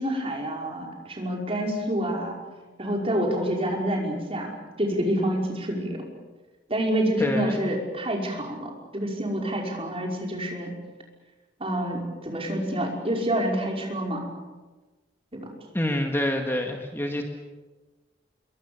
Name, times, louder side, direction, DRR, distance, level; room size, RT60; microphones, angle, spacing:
voice 1, 0.0-2.4 2.8-4.5 4.8-6.1 6.7-10.7 11.6-14.2 15.3-15.5, right 1 dB, 30° right, 0 dB, 5.4 m, -27 dB
voice 2, 7.2-7.6 15.7-17.2, left 1 dB, 15° left, 3 dB, 1.9 m, -27 dB
27.5 x 23.0 x 7.2 m, 1.2 s
head